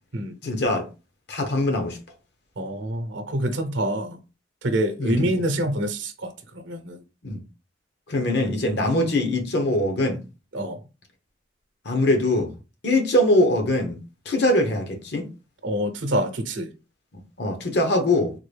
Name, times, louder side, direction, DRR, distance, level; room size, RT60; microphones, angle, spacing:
voice 1, 0.4-0.9 1.3-2.0 5.0-5.3 7.2-7.4 8.1-10.2 11.8-12.5 12.8-14.0 14.3-15.3 17.4-18.3, left 1 dB, 60° left, 0.8 m, -22 dB
voice 2, 2.6-4.2 4.6-7.0 10.5-10.8 15.6-16.7, right 1 dB, 85° right, 0.7 m, -26 dB
3.7 x 2.2 x 3.3 m
head